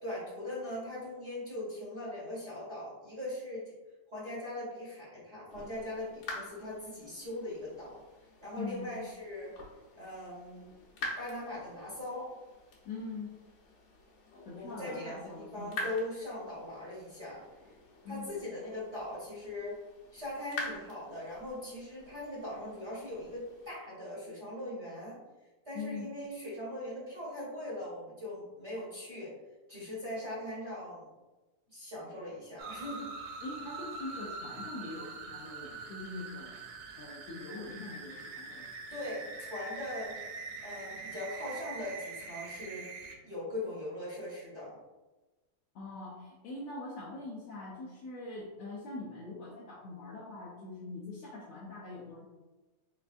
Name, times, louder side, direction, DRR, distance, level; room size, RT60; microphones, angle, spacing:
voice 1, 0.0-3.7 4.1-8.0 8.4-9.5 9.9-10.7 11.2-12.3 14.5-17.4 18.1-19.8 20.1-29.4 29.7-31.1 31.7-33.1 38.9-40.1 40.6-42.9 43.2-44.8, left 1 dB, 60° right, -8 dB, 0.7 m, -40 dB
sound 1, 5.5-23.7, left 2 dB, 65° left, 1.8 m, -47 dB
voice 2, 8.6-8.9 12.8-13.3 14.5-15.9 18.0-18.4 25.7-26.1 33.4-38.7 45.7-52.2, left 3 dB, 80° left, -5 dB, 1.4 m, -43 dB
sound 2, 32.6-43.2, right 4 dB, 75° right, 1.8 m, -44 dB
5.1 x 3.4 x 2.5 m, 1.2 s
omnidirectional pair, 3.6 m